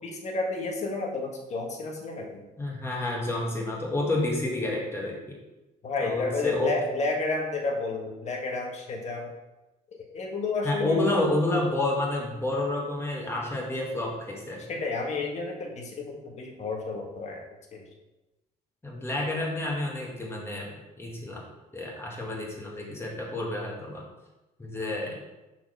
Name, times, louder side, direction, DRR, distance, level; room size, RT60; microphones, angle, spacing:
voice 1, 0.0-2.5 5.8-9.3 10.1-11.2 14.6-17.5 17.7-17.8, left 3 dB, 40° left, 1 dB, 1.5 m, -31 dB
voice 2, 2.6-5.2 6.0-6.7 10.6-14.7 18.8-21.4 21.7-24.0 24.6-25.2, left 2 dB, 15° left, -3 dB, 2.0 m, -29 dB
5.8 x 4.4 x 5.3 m, 1.0 s
cardioid pair, 110°, 17 cm